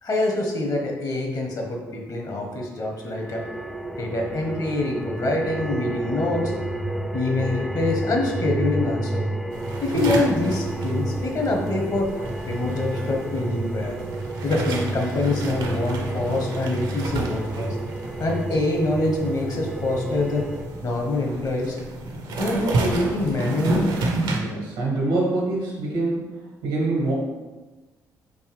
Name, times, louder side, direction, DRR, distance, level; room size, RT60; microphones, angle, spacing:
voice 1, 0.0-3.4 4.0-6.6 7.1-9.2 9.8-12.1 12.5-14.0 14.4-17.7 18.2-20.5 20.8-21.8 22.4-23.8, left 2 dB, 50° left, 1 dB, 1.1 m, -25 dB
sound 1, 2.8-20.7, right 2 dB, ahead, 0.4 m, -31 dB
sound 2, 9.5-24.4, right 2 dB, 65° right, 0.7 m, -31 dB
voice 2, 24.3-26.3 26.6-27.1, right 2 dB, 85° right, -4 dB, 1.3 m, -25 dB
4.6 x 2.7 x 3.2 m, 1.2 s
hypercardioid pair, 45°, 8 cm